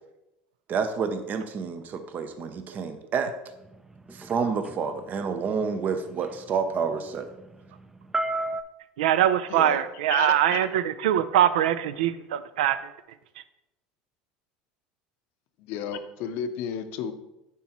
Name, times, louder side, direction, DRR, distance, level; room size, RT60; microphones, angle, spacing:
voice 1, 0.7-3.3 4.1-7.3, right 5 dB, 45° right, 9 dB, 0.7 m, -29 dB
sound 1, 3.6-8.6, right 2 dB, 10° right, 0.4 m, -35 dB
voice 2, 9.0-12.8, right 11 dB, 80° right, 14 dB, 0.3 m, -23 dB
voice 3, 9.5-9.8 10.1-10.7 15.6-17.1, left 8 dB, 65° left, 9 dB, 0.6 m, -33 dB
7.0 x 4.5 x 3.0 m, 0.92 s
hypercardioid pair, 90°, 4 cm